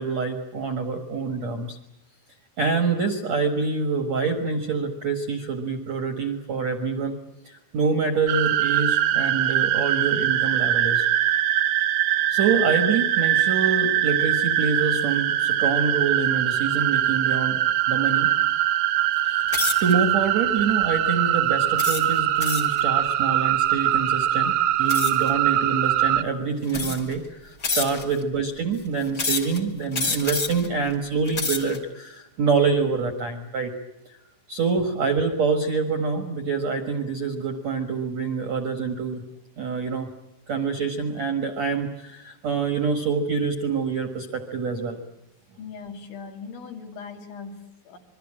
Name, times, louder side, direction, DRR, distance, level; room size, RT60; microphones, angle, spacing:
voice 1, 0.0-1.8 2.6-7.2 7.4-11.1 12.3-17.6 17.9-18.3 19.2-33.8 34.1-34.2 34.5-39.2 39.6-40.1 40.5-45.0, right 5 dB, 55° right, 7 dB, 1.9 m, -26 dB
sound 1, 8.3-26.2, right 12 dB, 85° right, 2.0 m, -22 dB
sound 2, 19.5-19.9 20.6-20.8 21.8-22.8 24.9-25.3 26.1-26.2 26.7-27.2 27.6-28.2 29.1-29.6 29.9-30.7 31.2-31.8, left 4 dB, 35° left, 1.5 m, -28 dB
voice 2, 45.6-48.0, left 5 dB, 70° left, 4 dB, 4.7 m, -39 dB
26.5 x 22.5 x 8.8 m, 0.89 s
omnidirectional pair, 5.6 m